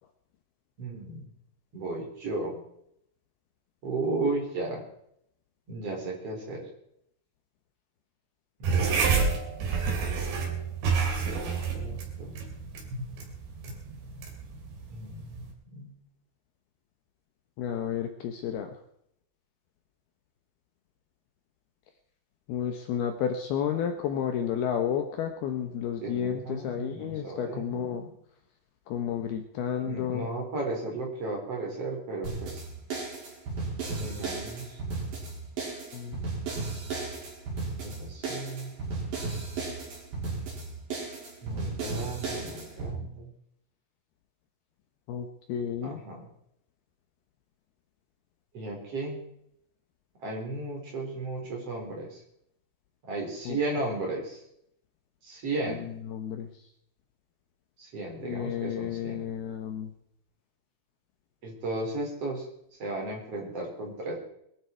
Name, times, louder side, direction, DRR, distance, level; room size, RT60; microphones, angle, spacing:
voice 1, 0.8-1.2 1.7-2.5 3.8-4.8 5.7-6.6 8.6-9.2 11.2-12.4 14.9-15.9 26.0-28.1 29.8-32.6 33.9-34.7 37.8-38.7 41.4-43.3 45.8-46.2 48.5-49.2 50.2-52.1 53.1-54.4 55.2-55.8 57.8-59.3 61.4-62.4 62.8-64.2, right 2 dB, 35° right, 0 dB, 4.9 m, -35 dB
sound 1, 8.6-15.5, right 5 dB, 75° right, 5.1 m, -29 dB
voice 2, 17.6-18.7 22.5-28.0 28.9-30.3 35.9-36.3 45.1-46.0 53.5-53.6 55.7-56.5 58.2-59.9, left 8 dB, 70° left, 6 dB, 2.8 m, -31 dB
sound 2, 32.2-42.9, right 3 dB, 55° right, 6.5 m, -35 dB
22.0 x 12.5 x 4.6 m, 0.73 s
omnidirectional pair, 5.1 m